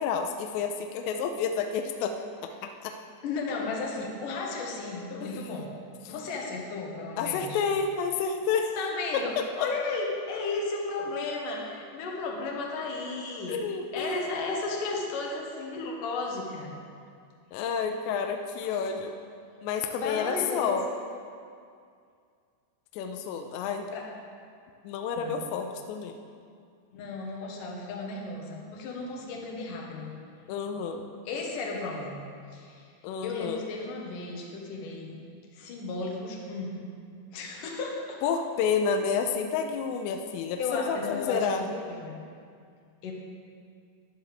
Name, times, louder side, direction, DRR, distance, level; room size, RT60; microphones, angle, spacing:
voice 1, 0.0-3.0 5.2-5.4 6.1-6.2 7.2-8.8 13.5-14.3 17.5-19.1 19.6-20.9 22.9-23.9 24.8-26.1 30.5-31.0 33.0-33.6 38.2-41.6, left 6 dB, 85° left, 5 dB, 2.7 m, -30 dB
voice 2, 3.2-5.8 6.1-7.6 8.8-13.6 13.9-16.8 18.7-19.0 20.0-20.8 23.9-24.1 25.2-25.5 26.9-30.2 31.3-32.9 33.2-35.2 35.5-36.9 37.3-38.2 40.6-42.2 43.0-43.1, left 3 dB, 70° left, 0 dB, 2.1 m, -34 dB
14.0 x 11.0 x 3.4 m, 2.3 s
omnidirectional pair, 5.4 m